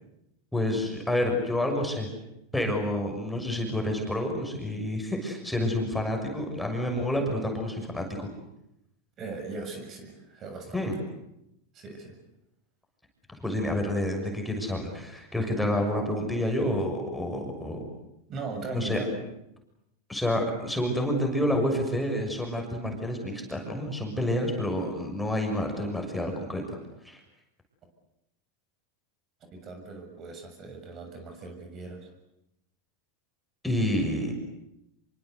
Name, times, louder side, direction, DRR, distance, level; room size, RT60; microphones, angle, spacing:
voice 1, 0.5-2.1 2.5-8.3 10.7-11.0 13.4-17.8 18.6-19.0 20.1-26.6 27.0-27.2 33.6-34.3, left 1 dB, 5° left, 2 dB, 6.6 m, -29 dB
voice 2, 9.2-10.9 11.7-12.1 18.3-19.1 29.5-32.1, right 3 dB, 35° right, 5 dB, 7.1 m, -39 dB
27.0 x 24.0 x 8.2 m, 0.84 s
supercardioid pair, 120°, 0 cm